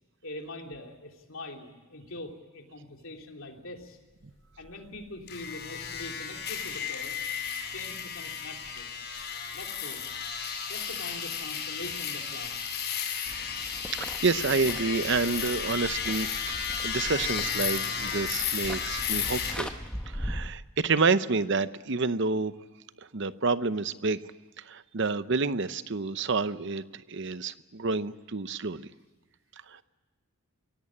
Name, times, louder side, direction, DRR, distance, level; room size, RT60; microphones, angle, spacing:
voice 1, 0.2-4.0 4.6-7.2 7.7-8.9 9.5-10.0 10.7-12.9, left 2 dB, 65° left, 2 dB, 3.2 m, -43 dB
sound 1, 5.3-19.5, left 7 dB, 50° left, 6.5 m, -33 dB
sound 2, 13.3-20.5, equal, 5° left, 0.9 m, -40 dB
voice 2, 14.0-16.6 16.8-19.7 20.1-22.5 23.1-24.2 24.7-28.9 29.7-29.8, right 4 dB, 55° right, 14 dB, 0.7 m, -29 dB
23.5 x 17.5 x 8.5 m, 1.3 s
head